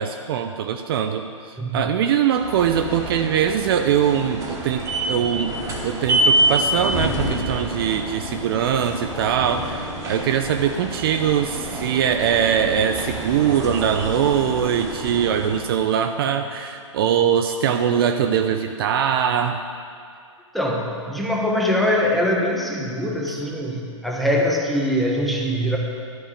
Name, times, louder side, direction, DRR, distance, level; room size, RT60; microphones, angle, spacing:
voice 1, 0.0-5.6 5.8-19.6, right 8 dB, 45° right, 6 dB, 0.6 m, -22 dB
sound 1, 2.3-15.8, right 1 dB, 20° right, 2.0 m, -27 dB
voice 2, 20.5-25.8, equal, ahead, -2 dB, 1.3 m, -22 dB
12.5 x 5.4 x 8.4 m, 2.2 s
hypercardioid pair, 135°, 17 cm